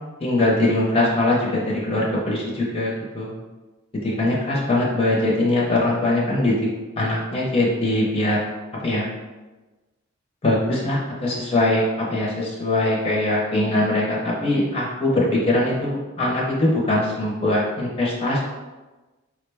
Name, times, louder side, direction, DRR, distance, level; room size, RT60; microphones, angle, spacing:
voice 1, 0.2-3.3 4.0-6.6 7.0-8.4 8.8-9.1 10.4-18.4, left 1 dB, 25° left, -4 dB, 0.6 m, -22 dB
4.7 x 2.1 x 3.3 m, 1.2 s
head